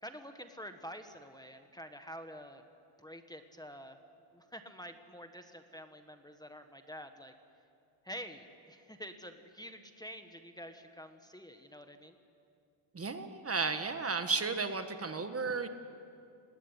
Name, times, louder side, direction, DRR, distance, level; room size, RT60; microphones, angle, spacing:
voice 1, 0.0-2.6 3.0-4.0 4.3-7.3 8.0-12.1, equal, 10° left, 7 dB, 1.5 m, -48 dB
voice 2, 12.9-15.7, right 4 dB, 30° right, 8 dB, 1.6 m, -33 dB
30.0 x 19.0 x 9.9 m, 2.5 s
cardioid pair, 120°, 48 cm